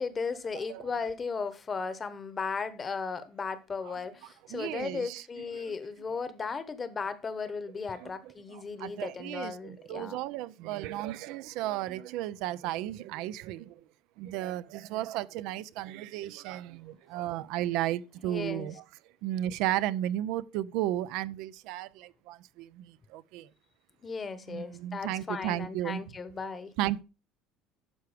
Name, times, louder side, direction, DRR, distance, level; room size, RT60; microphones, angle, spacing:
voice 1, 0.0-10.2 18.2-18.7 24.0-26.7, left 5 dB, 25° left, 1.0 m, -36 dB
voice 2, 0.5-0.9 3.8-4.0 4.5-5.3 5.5-5.8 6.1-6.5 7.9-13.8 14.2-18.8 19.2-23.5 24.5-26.0 26.8-27.0, right 13 dB, 70° right, 0.5 m, -34 dB
11.5 x 4.7 x 4.9 m
cardioid pair, 140°, 0 cm